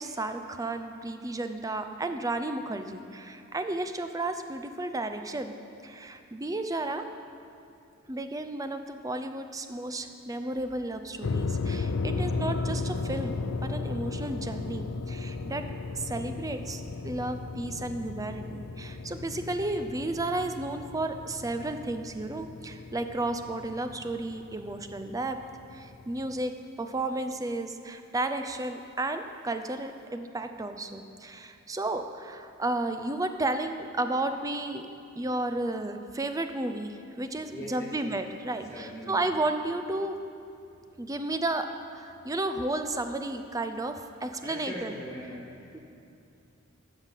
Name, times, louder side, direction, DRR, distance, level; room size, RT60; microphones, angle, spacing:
voice 1, 0.0-5.5 5.8-7.0 8.1-11.9 12.2-13.4 13.6-15.6 15.9-25.4 25.7-26.5 26.8-34.9 35.2-40.2 41.0-41.7 41.9-44.9 45.7-45.8, right 2 dB, 15° right, 7 dB, 0.5 m, -33 dB
sound 1, 11.2-26.4, left 3 dB, 90° left, 0.5 m, -35 dB
voice 2, 37.5-37.9 38.4-39.3 44.4-45.8, equal, 15° left, -8 dB, 2.4 m, -41 dB
13.5 x 5.8 x 7.4 m, 2.5 s
head